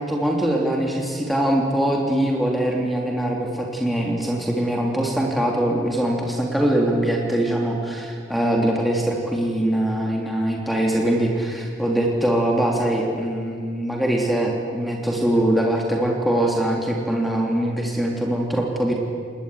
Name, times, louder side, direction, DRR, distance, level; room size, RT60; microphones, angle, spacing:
voice 1, 0.0-18.9, right 1 dB, ahead, -1 dB, 3.1 m, -22 dB
27.5 x 20.5 x 10.0 m, 2.3 s
head